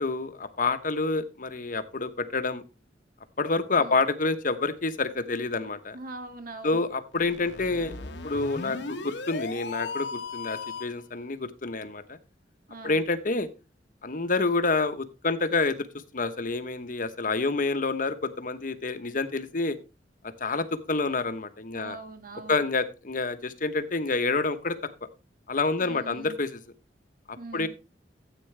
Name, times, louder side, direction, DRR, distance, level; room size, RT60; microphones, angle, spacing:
voice 1, 0.0-2.6 3.4-6.0 6.6-7.9 8.2-12.2 12.8-13.5 14.0-15.9 16.1-19.8 20.2-22.0 22.5-24.8 25.5-26.6 27.3-27.7, left 3 dB, 50° left, 10 dB, 1.0 m, -28 dB
voice 2, 5.9-6.8 12.7-13.0 21.7-22.6 25.8-26.4 27.4-27.7, right 2 dB, 50° right, 6 dB, 1.9 m, -42 dB
sound 1, 7.1-11.0, left 4 dB, 80° left, 1.2 m, -37 dB
13.5 x 8.4 x 3.3 m, 0.30 s
head